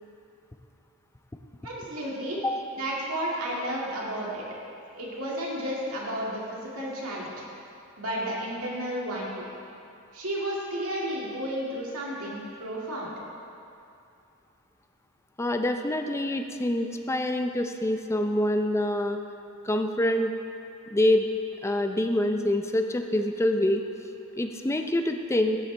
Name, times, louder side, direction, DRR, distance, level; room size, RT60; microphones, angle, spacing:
voice 1, 1.6-2.4 2.7-4.4 4.9-7.3 8.0-9.5 10.1-13.1, right 1 dB, 70° right, -5 dB, 2.2 m, -32 dB
voice 2, 15.4-19.2 19.6-20.3 20.9-21.3 21.6-23.8 24.4-25.6, left 1 dB, 10° left, 5 dB, 0.5 m, -26 dB
15.0 x 7.1 x 3.3 m, 2.6 s
head